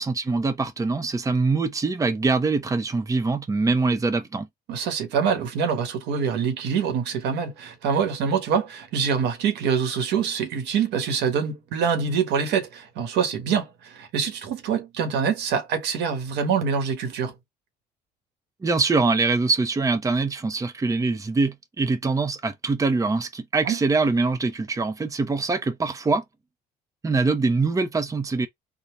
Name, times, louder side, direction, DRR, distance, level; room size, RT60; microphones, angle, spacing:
voice 1, 0.0-4.5 18.6-26.2 27.0-28.5, right 3 dB, 20° right, 0.8 m, -23 dB
voice 2, 4.7-17.3 23.6-23.8, right 6 dB, 85° right, 1.3 m, -25 dB
4.0 x 2.3 x 3.2 m
cardioid pair, 110°, 17 cm